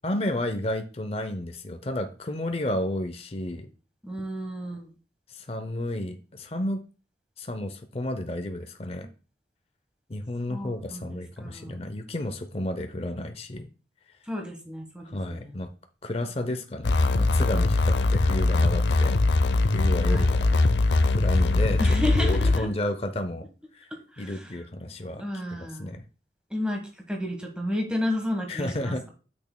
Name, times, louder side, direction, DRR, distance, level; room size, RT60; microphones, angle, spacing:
voice 1, 0.0-3.7 5.3-6.8 7.4-9.1 10.1-13.7 15.1-15.7 16.0-19.2 19.7-20.5 20.9-21.8 22.2-23.9 24.2-25.3 25.5-26.0 28.5-29.1, left 1 dB, 35° left, 7 dB, 0.6 m, -32 dB
voice 2, 4.0-4.9 10.5-11.8 14.3-15.6 20.0-20.3 21.8-22.7 24.2-24.5 25.2-26.0 26.5-26.8 27.1-29.1, left 1 dB, 5° right, 2 dB, 1.3 m, -32 dB
sound 1, 16.8-22.6, left 2 dB, 80° left, 0.5 m, -21 dB
8.9 x 6.2 x 2.2 m, 0.36 s
head